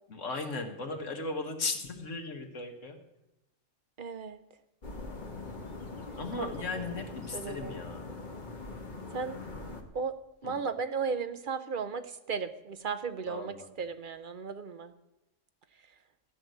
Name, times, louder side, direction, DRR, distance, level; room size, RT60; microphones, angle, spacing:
voice 1, 0.1-3.0 6.2-8.1 10.4-10.6 13.3-13.7, left 3 dB, 70° left, 4 dB, 1.9 m, -37 dB
voice 2, 4.0-4.4 6.4-6.5 7.3-7.8 9.1-9.4 9.9-10.2 10.4-14.9, right 5 dB, 45° right, 10 dB, 0.9 m, -35 dB
sound 1, 4.8-9.8, left 3 dB, 40° left, 1.6 m, -42 dB
14.0 x 6.0 x 9.3 m, 0.95 s
omnidirectional pair, 1.3 m